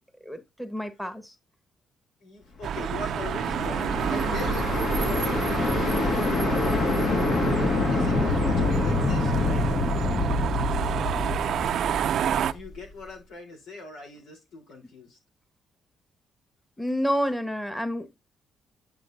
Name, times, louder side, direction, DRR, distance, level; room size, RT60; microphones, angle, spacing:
voice 1, 0.2-1.3 16.8-18.2, equal, 5° left, 1.4 m, -29 dB
voice 2, 2.2-6.6 7.8-9.7 12.4-15.2, left 3 dB, 80° left, 3.8 m, -41 dB
sound 1, 2.6-12.5, right 9 dB, 70° right, 0.5 m, -29 dB
sound 2, 2.8-12.8, left 3 dB, 60° left, 2.1 m, -26 dB
10.5 x 6.1 x 2.7 m
cardioid pair, 90°, 0 cm